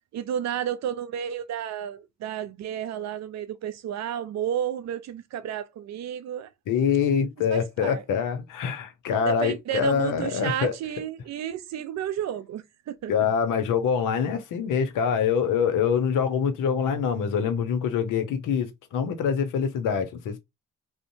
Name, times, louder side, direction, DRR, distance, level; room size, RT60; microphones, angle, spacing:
voice 1, 0.1-6.5 7.5-8.0 9.2-13.3, right 10 dB, 55° right, 0.5 m, -32 dB
voice 2, 6.7-10.7 13.1-20.4, left 7 dB, 70° left, 0.7 m, -25 dB
2.5 x 2.1 x 2.6 m
hypercardioid pair, 40°, 33 cm